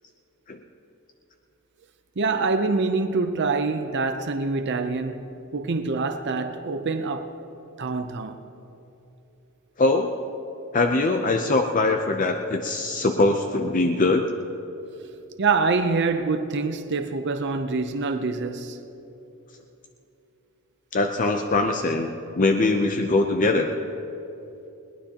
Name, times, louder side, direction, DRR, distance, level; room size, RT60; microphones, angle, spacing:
voice 1, 2.2-7.4 7.8-8.4 15.4-18.8, right 4 dB, 55° right, 0.6 m, -25 dB
voice 2, 9.8-10.1 10.7-14.2 20.9-22.1 22.4-23.7, left 2 dB, 40° left, 0.6 m, -22 dB
21.5 x 19.0 x 2.9 m
head